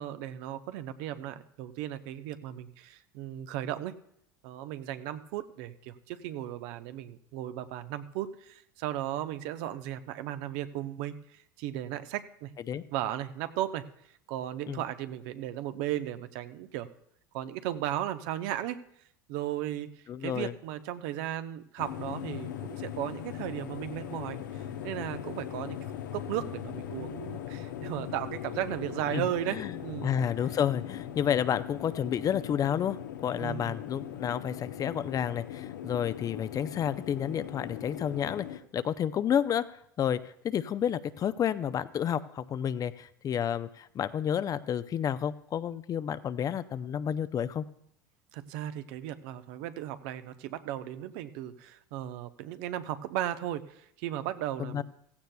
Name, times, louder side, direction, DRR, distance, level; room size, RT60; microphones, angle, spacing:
voice 1, 0.0-4.0 4.4-12.5 12.9-13.9 14.3-16.9 17.3-18.8 19.3-19.9 20.2-25.8 26.1-30.1 33.4-33.8 48.3-54.8, right 12 dB, 60° right, 11 dB, 0.8 m, -36 dB
voice 2, 20.1-20.5 29.1-29.2 29.6-29.7 30.0-38.5 38.7-39.6 40.0-47.6 54.6-54.8, left 9 dB, 35° left, 14 dB, 0.6 m, -30 dB
sound 1, 21.8-38.6, left 10 dB, 75° left, 0.8 m, -40 dB
16.0 x 15.5 x 2.3 m, 0.73 s
hypercardioid pair, 80°, 10 cm